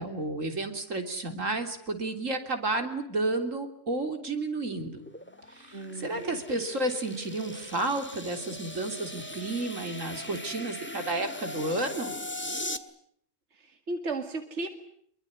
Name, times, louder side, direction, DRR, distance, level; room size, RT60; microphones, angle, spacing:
voice 1, 0.0-5.0 5.5-12.1, right 2 dB, 90° right, 6 dB, 3.9 m, -31 dB
sound 1, 4.8-12.8, left 1 dB, 10° left, 1.8 m, -40 dB
voice 2, 5.7-6.4 13.5-14.7, right 2 dB, 65° right, 7 dB, 2.4 m, -35 dB
26.0 x 23.0 x 9.7 m, 0.66 s
omnidirectional pair, 1.3 m